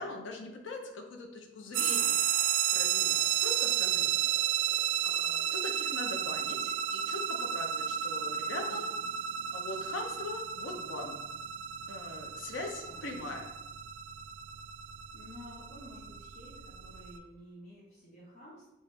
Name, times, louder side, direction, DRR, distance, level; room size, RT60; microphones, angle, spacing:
voice 1, 0.0-2.2 2.7-4.3 5.0-8.9 9.5-11.2 11.9-13.5, left 2 dB, 85° left, 3 dB, 0.6 m, -41 dB
voice 2, 1.7-2.1 8.6-9.0 12.8-13.1 15.1-18.7, left 1 dB, 35° left, -8 dB, 0.8 m, -52 dB
sound 1, 1.7-17.2, right 10 dB, 80° right, 0.3 m, -32 dB
3.1 x 2.4 x 4.1 m, 0.95 s
head